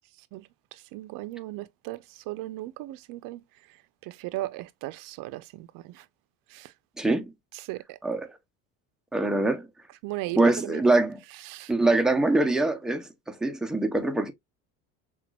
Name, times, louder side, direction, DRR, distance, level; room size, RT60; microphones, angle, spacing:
voice 1, 0.9-2.0 2.3-3.4 4.1-6.0 6.5-6.7 7.7-8.0 10.0-10.8 11.5-11.7, right 17 dB, 70° right, 0.6 m, -36 dB
voice 2, 7.0-7.3 8.0-8.3 9.1-9.7 10.4-11.2 11.7-14.3, right 2 dB, ahead, 0.6 m, -24 dB
5.9 x 2.4 x 2.2 m
cardioid pair, 110°, 34 cm